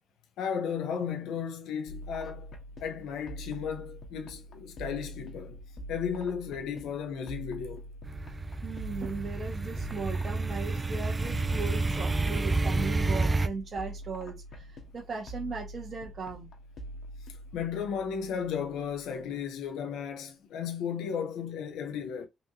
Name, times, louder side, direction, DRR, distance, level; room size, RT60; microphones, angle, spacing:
voice 1, 0.4-2.5 2.8-5.6 5.9-7.8 17.3-22.3, left 7 dB, 90° left, 0.7 m, -34 dB
sound 1, 1.9-19.5, equal, 60° left, 1.2 m, -45 dB
sound 2, 8.0-13.5, right 3 dB, 25° right, 0.4 m, -30 dB
voice 2, 8.6-16.5, right 4 dB, 45° right, 1.3 m, -37 dB
4.1 x 2.7 x 2.9 m
cardioid pair, 90°, 0 cm